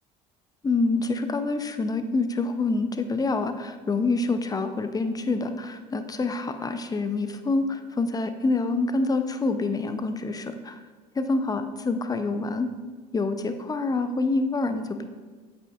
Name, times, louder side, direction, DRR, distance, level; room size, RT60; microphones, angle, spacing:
voice 1, 0.6-10.8 11.2-12.7 13.1-15.0, left 3 dB, 15° left, 9 dB, 0.5 m, -26 dB
8.2 x 5.0 x 2.4 m, 1.5 s
hypercardioid pair, 70°, 21 cm